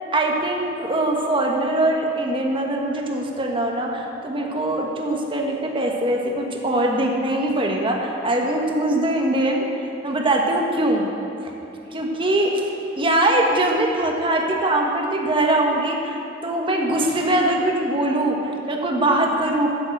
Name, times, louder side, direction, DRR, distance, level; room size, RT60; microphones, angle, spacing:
voice 1, 0.1-9.6 10.0-11.1 11.9-12.5 13.0-18.4 18.7-19.7, right 1 dB, 30° right, 0 dB, 1.4 m, -22 dB
10.5 x 7.8 x 7.9 m, 2.8 s
head